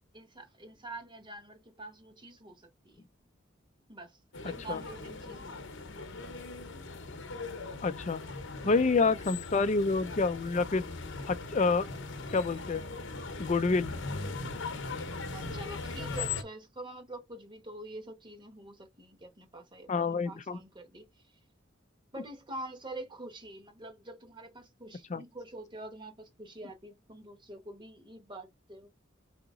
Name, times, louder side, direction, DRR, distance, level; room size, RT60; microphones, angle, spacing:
voice 1, 0.1-3.1 3.9-5.7 8.6-8.8 15.3-21.1 22.1-28.9, right 2 dB, 25° right, 1.2 m, -46 dB
sound 1, 4.3-16.4, left 3 dB, 65° left, 0.9 m, -39 dB
voice 2, 4.4-4.8 7.8-8.2 8.6-10.8 11.2-11.9 12.3-12.8 13.4-13.9 19.9-20.6 25.1-25.2, left 4 dB, 35° left, 0.5 m, -28 dB
4.9 x 2.9 x 3.7 m
head